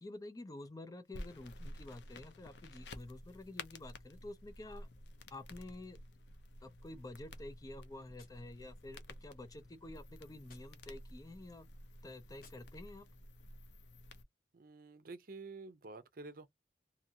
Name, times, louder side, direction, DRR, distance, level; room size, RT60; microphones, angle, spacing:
voice 1, 0.0-4.9 5.3-6.0 6.6-11.7 12.0-13.1, left 2 dB, 20° left, 0.4 m, -50 dB
sound 1, 1.1-14.2, left 1 dB, 75° left, 0.6 m, -52 dB
Gunshot gunfire, 8.1-9.3 10.4-11.3 12.4-13.2, left 5 dB, 55° left, 0.9 m, -67 dB
voice 2, 14.5-16.5, right 3 dB, 50° right, 0.6 m, -49 dB
2.7 x 2.5 x 2.7 m
head